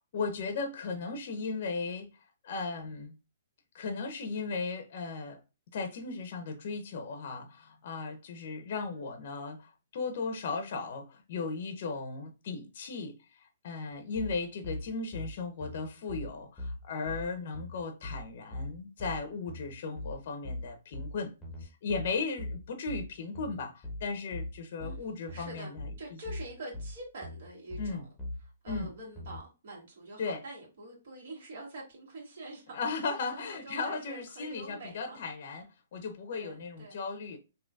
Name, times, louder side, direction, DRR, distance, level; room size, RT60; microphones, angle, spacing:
voice 1, 0.1-2.1 2.4-3.2 3.7-5.4 5.7-21.3 21.6-26.2 27.8-28.1 28.7-28.9 30.2-30.4 32.7-37.4, left 4 dB, 55° left, 0.6 m, -36 dB
sound 1, 14.2-29.4, left 1 dB, 10° left, 1.0 m, -41 dB
voice 2, 25.3-25.7 26.0-28.1 28.4-32.7 33.1-35.2 36.3-37.0, right 2 dB, 60° right, 1.7 m, -45 dB
3.8 x 2.7 x 2.3 m
hypercardioid pair, 150°, 0 cm